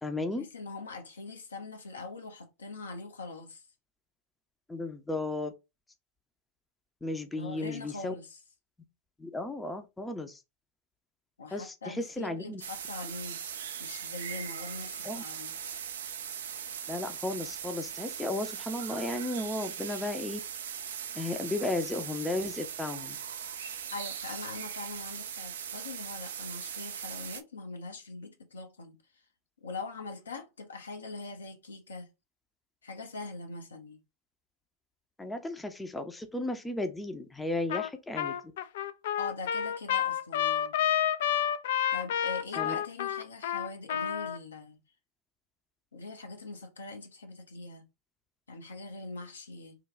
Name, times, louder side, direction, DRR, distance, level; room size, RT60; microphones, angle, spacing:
voice 1, 0.0-0.4 4.7-5.5 7.0-8.1 9.2-10.4 11.5-12.6 15.0-15.2 16.9-20.4 21.1-23.2 35.2-38.4 42.6-42.8, left 2 dB, 10° left, 0.6 m, -34 dB
voice 2, 0.5-3.7 7.3-8.4 11.4-13.4 13.8-15.5 23.9-29.0 29.6-32.1 32.8-34.0 39.2-40.9 41.9-44.8 45.9-47.8 48.5-49.8, left 3 dB, 85° left, 0.9 m, -42 dB
sound 1, 12.6-27.4, right 8 dB, 70° right, 0.4 m, -39 dB
Trumpet, 37.7-37.9 38.2-44.4, left 10 dB, 65° left, 0.3 m, -29 dB
3.1 x 2.2 x 3.7 m
hypercardioid pair, 95°, 0 cm